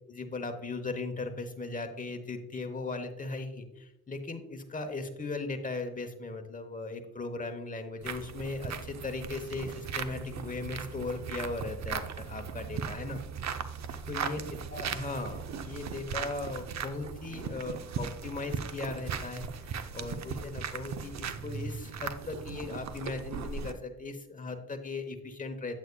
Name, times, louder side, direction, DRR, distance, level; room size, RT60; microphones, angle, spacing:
voice 1, 0.1-13.2 14.0-14.4 14.7-25.8, left 3 dB, 25° left, 6 dB, 1.0 m, -38 dB
sound 1, 8.0-23.7, right 6 dB, 50° right, 0.6 m, -38 dB
8.2 x 8.0 x 2.2 m, 0.89 s
cardioid pair, 95°, 35 cm